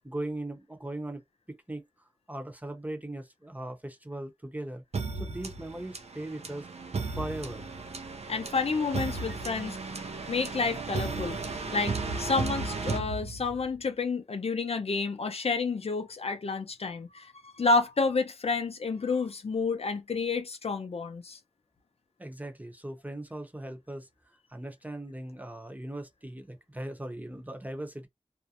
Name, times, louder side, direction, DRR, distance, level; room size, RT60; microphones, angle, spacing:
voice 1, 0.0-1.2 1.5-1.8 2.3-4.8 5.1-6.7 7.1-7.7 22.2-24.1 24.5-28.1, right 1 dB, 15° right, 0.8 m, -39 dB
sound 1, 4.9-13.8, right 4 dB, 80° right, 0.5 m, -35 dB
voice 2, 8.3-9.8 10.3-11.4 11.7-21.4, left 4 dB, 70° left, 0.5 m, -30 dB
2.4 x 2.0 x 2.8 m
wide cardioid pair, 55°, 11 cm